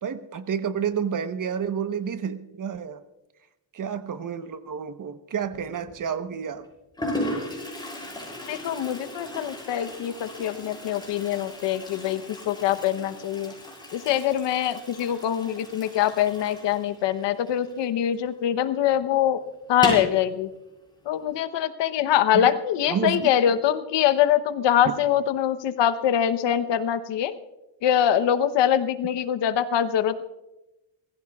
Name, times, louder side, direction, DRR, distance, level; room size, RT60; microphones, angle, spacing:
voice 1, 0.0-3.0 3.7-6.7 22.3-22.6 22.9-23.3 24.8-24.9, right 7 dB, 45° right, 11 dB, 1.1 m, -29 dB
Toilet flush, 5.5-5.9 6.6-6.7 7.0-18.3 18.5-18.6 18.9-19.0 19.7-20.2, left 1 dB, 10° left, 7.1 m, -36 dB
voice 2, 8.5-13.5 13.9-19.4 19.7-20.5 21.1-27.3 27.8-30.2, left 10 dB, 70° left, 10 dB, 1.0 m, -24 dB
28.5 x 15.5 x 2.4 m, 1.0 s
cardioid pair, 80°, 44 cm